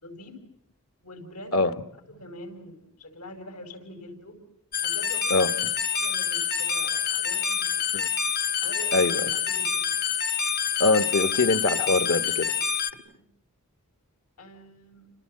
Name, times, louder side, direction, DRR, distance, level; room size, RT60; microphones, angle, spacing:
voice 1, 0.0-0.4 1.0-1.6 2.1-4.4 4.8-5.5 5.9-7.9 8.6-9.9 12.9-13.2 14.4-15.1, left 1 dB, 90° left, 5.1 m, -44 dB
sound 1, 4.7-12.9, left 7 dB, 45° left, 1.1 m, -27 dB
voice 2, 10.8-12.5, left 3 dB, 65° left, 1.3 m, -23 dB
29.5 x 26.5 x 7.6 m
head